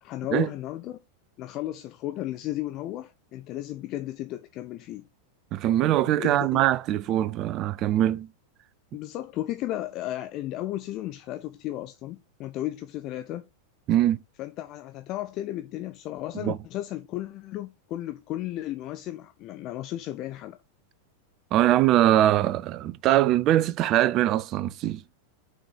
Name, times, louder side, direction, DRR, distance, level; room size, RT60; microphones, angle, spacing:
voice 1, 0.0-1.0 1.4-5.0 5.8-6.6 8.9-13.5 14.4-20.6, left 14 dB, 40° left, 0.5 m, -34 dB
voice 2, 5.5-8.3 13.9-14.2 16.4-16.6 21.5-25.0, right 13 dB, 35° right, 0.4 m, -22 dB
6.0 x 4.5 x 4.6 m
figure-of-eight pair, 90°, 0 cm